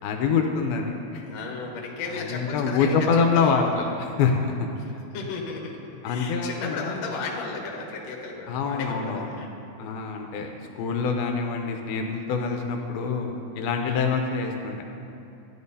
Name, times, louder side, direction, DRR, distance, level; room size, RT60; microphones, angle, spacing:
voice 1, 0.0-1.2 2.1-3.7 4.0-4.9 6.0-7.0 8.5-9.4 9.8-10.5 10.8-14.8, left 5 dB, 80° left, 3 dB, 2.5 m, -25 dB
voice 2, 1.2-3.1 3.3-4.2 4.8-4.9 5.1-9.5 11.4-11.5 13.8-14.1, left 4 dB, 60° left, -1 dB, 1.9 m, -35 dB
14.5 x 10.5 x 2.7 m, 2.9 s
omnidirectional pair, 4.5 m